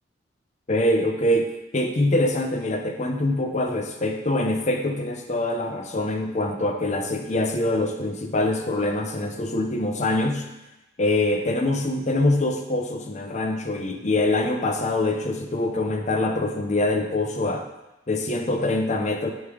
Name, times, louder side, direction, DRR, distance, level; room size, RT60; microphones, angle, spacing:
voice 1, 0.7-10.5 11.0-17.7 18.1-19.3, left 1 dB, 40° left, 5 dB, 0.7 m, -24 dB
9.2 x 3.3 x 4.9 m, 1.0 s
head